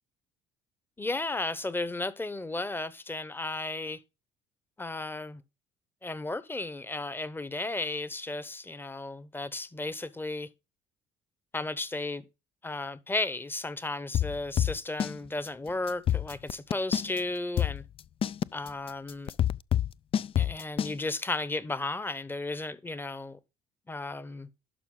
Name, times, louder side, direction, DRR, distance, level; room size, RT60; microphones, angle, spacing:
voice 1, 1.0-4.0 4.8-5.4 6.0-10.5 11.5-12.2 12.6-17.8 18.5-19.3 20.4-23.4 23.9-24.5, left 2 dB, 15° left, 0.9 m, -34 dB
sound 1, 14.1-15.2 15.4-15.5 15.9-17.2 17.6-20.9, left 10 dB, 35° left, 0.4 m, -27 dB
11.5 x 5.4 x 3.8 m
hypercardioid pair, 70°, 15 cm